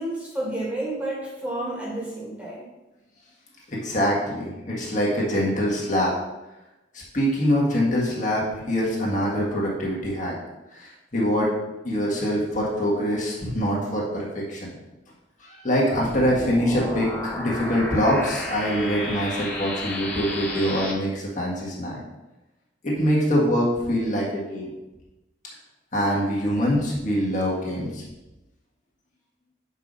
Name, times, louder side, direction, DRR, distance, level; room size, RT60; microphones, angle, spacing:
voice 1, 0.0-2.7, right 1 dB, 10° right, -5 dB, 1.7 m, -30 dB
voice 2, 3.7-6.1 7.1-10.3 10.7-11.5 11.8-14.7 15.4-22.0 22.8-24.7 25.9-28.0, equal, 40° left, -4 dB, 1.6 m, -24 dB
sound 1, 15.9-20.9, left 1 dB, 10° left, 0.9 m, -32 dB
5.6 x 4.6 x 5.4 m, 1.0 s
head